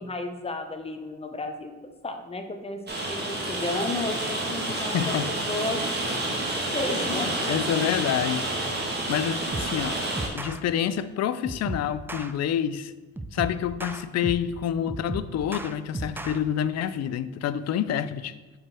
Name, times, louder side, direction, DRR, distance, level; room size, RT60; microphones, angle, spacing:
voice 1, 0.0-1.7 2.0-2.8 3.1-5.2 5.5-5.8 6.5-7.6, left 3 dB, 20° left, 0.8 m, -33 dB
Rain, 2.9-10.3, right 2 dB, 35° right, 1.8 m, -29 dB
voice 2, 4.9-5.3 7.1-8.5 9.1-10.0 10.3-12.9 13.3-18.3, left 9 dB, 60° left, 0.5 m, -28 dB
sound 1, 9.5-9.8 10.2-10.6 11.4-12.3 13.2-14.5 14.9-16.4, right 2 dB, 5° right, 0.4 m, -35 dB
6.0 x 5.0 x 4.4 m
cardioid pair, 90°, 30 cm